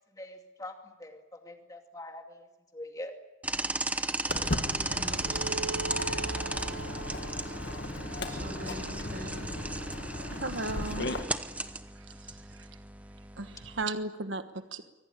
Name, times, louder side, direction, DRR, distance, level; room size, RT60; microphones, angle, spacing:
voice 1, 0.1-2.5 2.7-3.1, left 1 dB, 15° left, 4 dB, 2.5 m, -44 dB
sound 1, 3.4-13.8, right 2 dB, 5° right, 0.9 m, -35 dB
Walk footsteps, 4.3-11.2, left 1 dB, 55° left, 2.0 m, -37 dB
voice 2, 4.4-5.7 7.0-7.1 8.2-9.9, equal, 45° right, 3 dB, 7.4 m, -44 dB
sound 2, 5.2-10.0, right 5 dB, 90° right, 3.8 m, -42 dB
voice 3, 10.3-11.1 12.0-12.7 13.4-14.9, right 3 dB, 70° right, 9 dB, 1.3 m, -36 dB
24.5 x 18.0 x 9.9 m, 1.1 s
head